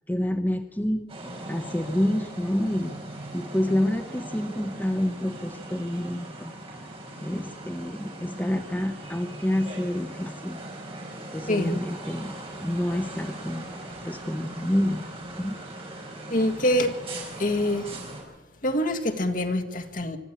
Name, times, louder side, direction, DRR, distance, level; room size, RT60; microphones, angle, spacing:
voice 1, 0.1-1.0 1.5-2.9 3.3-6.5 7.2-10.6 11.3-13.6 14.0-15.1 15.4-15.6, left 1 dB, 10° left, 6 dB, 0.9 m, -28 dB
sound 1, 1.1-18.2, right 1 dB, 30° right, 5.0 m, -40 dB
voice 2, 16.3-17.0 17.4-17.9 18.6-20.2, left 1 dB, 50° left, 6 dB, 1.8 m, -25 dB
25.0 x 12.5 x 8.7 m, 1.2 s
head